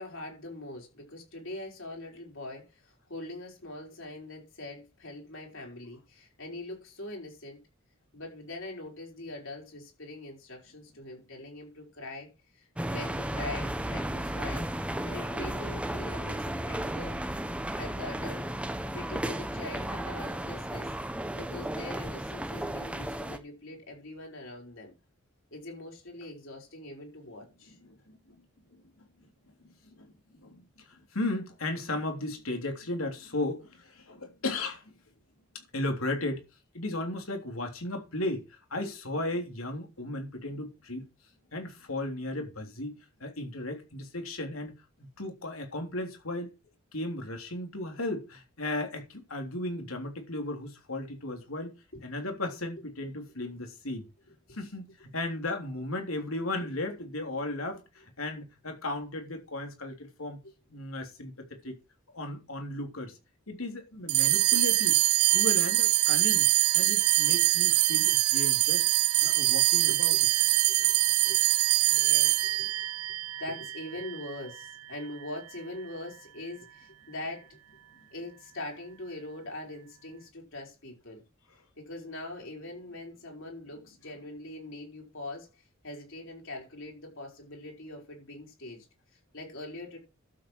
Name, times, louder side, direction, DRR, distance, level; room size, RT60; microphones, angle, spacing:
voice 1, 0.0-7.6 8.1-12.3 12.5-14.7 15.0-17.2 17.7-20.9 21.3-24.9 25.5-27.8 51.9-52.0 54.5-54.7 56.6-56.7 60.4-60.5 69.3-71.4 71.9-73.1 73.4-77.6 78.1-81.2 81.8-88.9 89.3-90.0, left 2 dB, 65° left, 5.2 m, -43 dB
sound 1, 12.8-23.4, right 1 dB, 5° right, 1.0 m, -34 dB
voice 2, 27.8-28.3 29.6-30.6 30.9-34.9 35.7-36.4 36.7-41.0 41.5-42.9 43.2-44.7 45.2-46.5 46.9-51.7 52.0-54.1 54.5-60.4 60.7-61.3 61.6-61.8 62.1-63.2 63.5-65.0 65.3-66.4 66.7-68.8 69.2-70.2, left 2 dB, 85° left, 3.3 m, -35 dB
sound 2, 64.1-74.7, right 19 dB, 90° right, 0.5 m, -24 dB
12.0 x 7.8 x 4.7 m
head